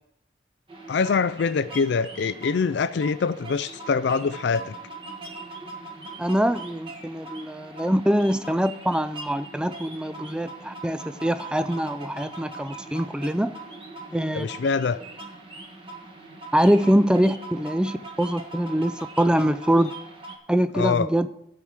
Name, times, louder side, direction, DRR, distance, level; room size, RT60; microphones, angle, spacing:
sound 1, 0.7-20.4, right 2 dB, 30° right, 1.4 m, -41 dB
voice 1, 0.9-4.8 14.3-15.0 20.7-21.1, left 5 dB, 75° left, 0.4 m, -24 dB
voice 2, 6.2-13.6 14.1-14.5 16.5-19.9 20.5-21.3, equal, 5° right, 0.3 m, -23 dB
12.0 x 4.8 x 7.3 m
head